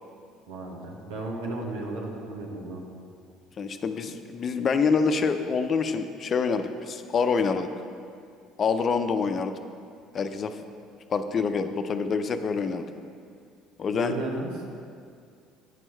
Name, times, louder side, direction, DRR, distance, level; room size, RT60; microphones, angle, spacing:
voice 1, 0.5-2.8 13.9-14.5, right 2 dB, 80° right, -1 dB, 1.2 m, -34 dB
voice 2, 3.6-7.7 8.6-9.5 10.1-10.6 11.1-12.9 13.8-14.2, left 5 dB, 45° left, 8 dB, 0.6 m, -26 dB
9.1 x 6.2 x 4.5 m, 2.3 s
hypercardioid pair, 65°, 0 cm